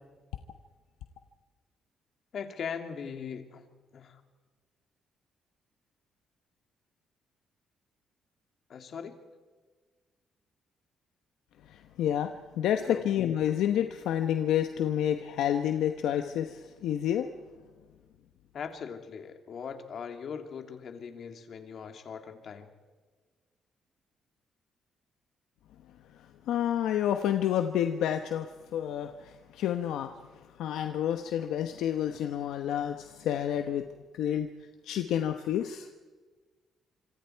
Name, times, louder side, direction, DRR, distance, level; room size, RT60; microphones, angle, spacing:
voice 1, 2.3-3.7 3.9-4.2 8.7-9.1 12.8-13.0 18.5-22.7, left 6 dB, 60° left, 5 dB, 2.7 m, -40 dB
voice 2, 11.7-12.3 12.6-17.3 26.5-28.5 28.7-30.1 30.6-33.9 34.1-34.5 34.9-35.9, left 10 dB, 85° left, 7 dB, 1.0 m, -29 dB
26.5 x 25.5 x 4.7 m, 1.4 s
cardioid pair, 90°, 0 cm